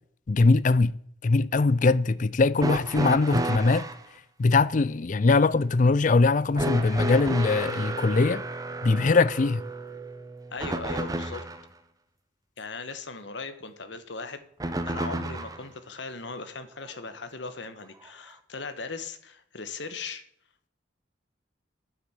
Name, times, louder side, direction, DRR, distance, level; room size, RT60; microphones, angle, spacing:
voice 1, 0.3-0.9 1.2-3.9 4.4-8.4 8.8-9.6, left 3 dB, 40° left, 0.4 m, -21 dB
sound 1, 2.6-4.0 6.6-11.7 14.6-15.7 16.9-17.0 18.0-18.1, right 1 dB, 20° right, 0.9 m, -32 dB
voice 2, 10.5-11.4 12.6-14.4 14.9-20.2, left 4 dB, 70° left, 1.3 m, -38 dB
9.4 x 7.3 x 8.1 m
head